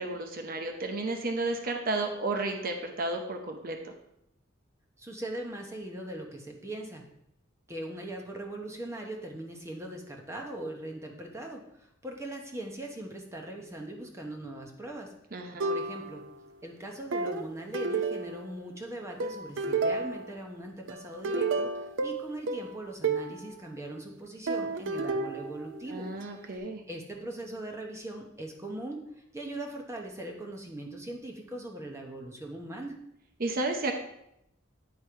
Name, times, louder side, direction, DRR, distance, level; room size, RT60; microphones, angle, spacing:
voice 1, 0.0-3.9 15.3-15.7 25.9-26.8 33.4-33.9, right 2 dB, 50° right, 4 dB, 0.8 m, -32 dB
voice 2, 5.0-7.0 7.7-15.1 15.7-16.2 16.6-26.1 26.4-33.0, right 1 dB, 15° right, 1 dB, 1.0 m, -40 dB
sound 1, 15.6-16.4 17.1-18.7 19.2-20.4 20.9-23.4 24.5-26.3, right 3 dB, 75° right, 0.5 m, -32 dB
9.9 x 3.4 x 4.5 m, 0.79 s
head